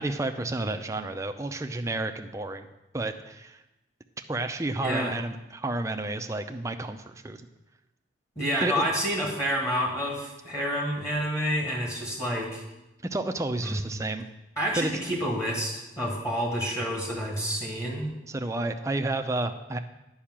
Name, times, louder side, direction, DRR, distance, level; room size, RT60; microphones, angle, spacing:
voice 1, 0.0-2.7 2.9-3.6 4.3-7.5 8.6-8.8 13.0-14.3 14.7-14.9 18.3-19.8, right 2 dB, 15° right, 5 dB, 0.5 m, -31 dB
voice 2, 4.8-5.1 8.3-12.6 13.6-13.8 14.6-18.1, equal, 15° left, 0 dB, 1.4 m, -29 dB
10.0 x 5.6 x 7.3 m, 0.97 s
head